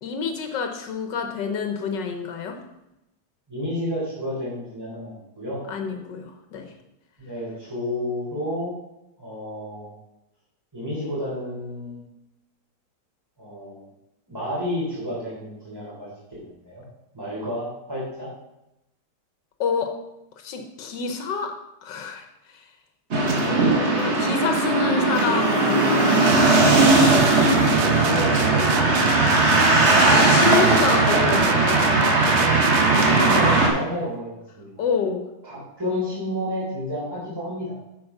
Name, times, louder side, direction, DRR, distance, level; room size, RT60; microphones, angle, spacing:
voice 1, 0.0-2.6 5.7-6.7 19.6-19.9 20.4-21.5 21.8-22.2 22.5-22.6 23.4-26.6 30.0-32.0 34.8-35.2, left 5 dB, 85° left, 5 dB, 1.6 m, -28 dB
voice 2, 3.5-5.6 7.2-8.7 9.2-9.9 10.7-12.0 13.4-13.8 14.3-16.8 17.1-18.3 23.3-23.8 27.9-29.2 33.0-34.7 35.4-37.8, left 1 dB, 15° right, -6 dB, 3.4 m, -31 dB
sound 1, 23.1-33.7, right 2 dB, 40° right, 1.7 m, -19 dB
sound 2, 26.3-33.8, right 8 dB, 90° right, 0.6 m, -25 dB
8.0 x 6.4 x 5.5 m, 0.90 s
omnidirectional pair, 1.9 m